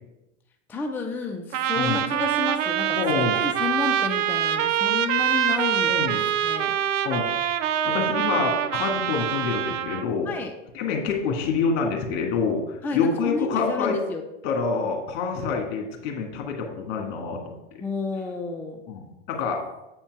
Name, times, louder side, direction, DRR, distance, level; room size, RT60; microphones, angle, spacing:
voice 1, 0.7-3.0 3.3-6.0 6.4-6.7 10.3-10.5 12.8-14.2 17.8-18.8, left 4 dB, 5° left, 3 dB, 0.4 m, -31 dB
Trumpet, 1.5-10.1, right 10 dB, 90° right, 0.6 m, -25 dB
voice 2, 2.9-3.4 5.8-6.2 7.0-7.3 7.8-10.3 10.7-14.0 14.4-17.8 18.9-19.6, left 5 dB, 60° left, 2 dB, 1.8 m, -27 dB
8.0 x 4.4 x 4.7 m, 0.96 s
hypercardioid pair, 115°, 36 cm